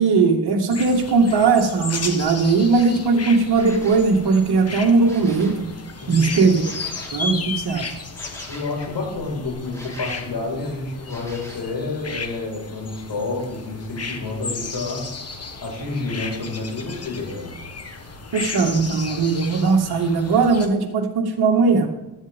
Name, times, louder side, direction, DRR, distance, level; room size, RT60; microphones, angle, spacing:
voice 1, 0.0-5.7 6.1-6.6 7.1-8.0 18.3-21.9, right 4 dB, 55° right, 1 dB, 2.2 m, -19 dB
sound 1, 0.7-20.7, left 4 dB, 30° left, 1.5 m, -34 dB
sound 2, 3.5-4.1 4.9-5.7 6.6-7.2 8.1-8.8 9.7-10.3 11.0-11.7, equal, 5° left, 4.3 m, -42 dB
voice 2, 6.0-6.4 8.2-17.6, left 3 dB, 60° left, -1 dB, 5.4 m, -29 dB
16.0 x 11.5 x 3.7 m, 1.0 s
cardioid pair, 115°, 46 cm